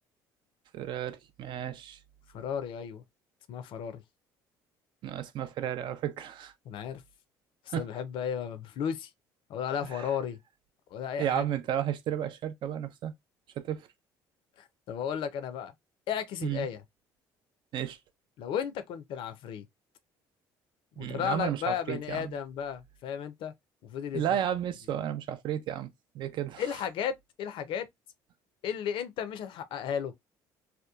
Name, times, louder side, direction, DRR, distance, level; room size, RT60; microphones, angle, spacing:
voice 1, 0.7-2.0 5.0-6.5 7.7-7.9 9.9-10.1 11.2-13.1 13.6-13.9 16.4-16.7 17.7-18.0 21.0-22.3 24.1-25.9 26.1-26.7, right 10 dB, 60° right, 0.4 m, -33 dB
voice 2, 2.3-3.0 3.5-4.0 6.7-7.0 7.7-9.1 9.5-10.4 10.9-11.4 14.6-15.7 16.1-16.8 18.4-19.6 21.0-23.5 23.8-24.4 26.6-27.9 28.6-30.1, left 8 dB, 65° left, 0.5 m, -34 dB
2.8 x 2.2 x 2.2 m
supercardioid pair, 85°, 9 cm